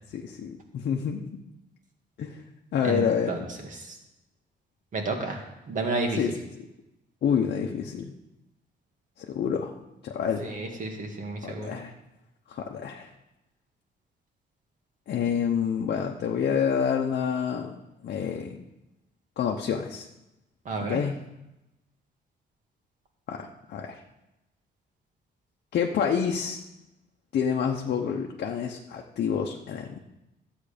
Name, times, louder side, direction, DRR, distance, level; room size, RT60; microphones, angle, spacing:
voice 1, 0.1-1.4 2.2-2.4 2.7-3.5 6.1-6.7 7.2-8.1 9.2-9.7 10.0-10.6 11.4-11.9 12.5-13.1 15.1-18.6 19.4-20.1 20.8-21.2 23.3-24.0 25.7-26.6 27.3-30.0, left 7 dB, 60° left, 1 dB, 0.9 m, -28 dB
voice 2, 2.8-3.4 4.9-5.4 5.7-6.2 10.5-11.7 20.7-21.0, right 3 dB, 45° right, 3 dB, 1.9 m, -30 dB
13.0 x 8.1 x 5.1 m, 0.95 s
cardioid pair, 155°, 18 cm